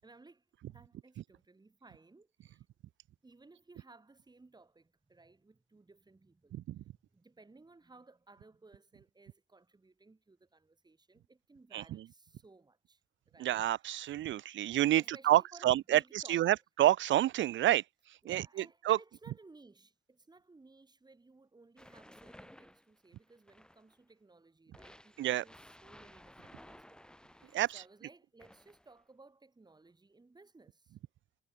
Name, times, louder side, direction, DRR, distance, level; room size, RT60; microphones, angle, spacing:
voice 1, 0.0-2.7 3.2-13.0 13.3-13.6 15.0-16.6 18.2-31.0, right 3 dB, 20° right, 6.1 m, -59 dB
voice 2, 11.7-12.0 13.4-17.8 18.2-18.4 18.9-19.0 25.2-25.4 27.5-27.7, right 13 dB, 70° right, 0.8 m, -28 dB
sound 1, 21.8-24.0 24.7-27.9 28.4-29.0, left 1 dB, 5° left, 6.5 m, -57 dB
cardioid pair, 90°, 20 cm